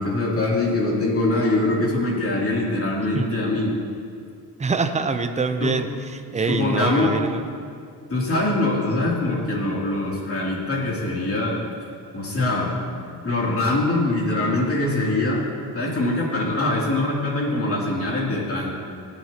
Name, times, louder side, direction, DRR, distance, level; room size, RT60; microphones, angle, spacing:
voice 1, 0.0-3.7 5.6-5.7 6.4-7.1 8.1-11.6 12.1-12.7 13.2-15.4 15.7-18.7, left 2 dB, 35° left, -4 dB, 2.9 m, -23 dB
voice 2, 4.6-5.9 6.1-7.4, right 4 dB, 15° right, 7 dB, 0.7 m, -24 dB
17.5 x 11.0 x 2.9 m, 2.3 s
cardioid pair, 115°, 41 cm